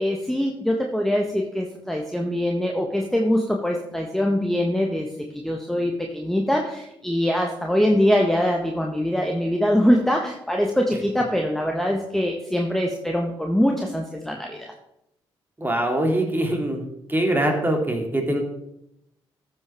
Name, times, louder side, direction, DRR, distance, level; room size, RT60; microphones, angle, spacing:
voice 1, 0.0-14.7, equal, 5° left, 1 dB, 1.3 m, -23 dB
voice 2, 15.6-16.8 17.1-18.4, right 1 dB, 15° right, 2 dB, 2.6 m, -23 dB
15.0 x 5.7 x 3.5 m, 0.81 s
hypercardioid pair, 40°, 12 cm